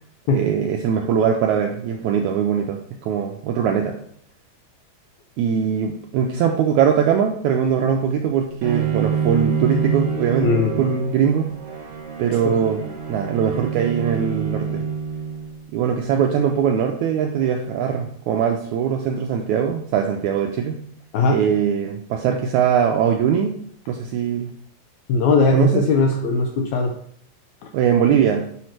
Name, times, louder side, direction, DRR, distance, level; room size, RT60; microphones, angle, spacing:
voice 1, 0.3-3.9 5.4-11.5 12.2-12.8 13.1-14.8 15.7-20.8 21.3-23.5 23.9-24.5 25.5-25.8 27.7-28.5, right 8 dB, 85° right, 3 dB, 1.7 m, -21 dB
Bowed string instrument, 8.6-15.7, right 7 dB, 50° right, 1.9 m, -26 dB
voice 2, 10.4-10.7 12.4-12.6 21.1-21.4 25.1-26.9, left 3 dB, 80° left, 2 dB, 1.6 m, -19 dB
7.0 x 3.1 x 5.8 m, 0.64 s
omnidirectional pair, 3.9 m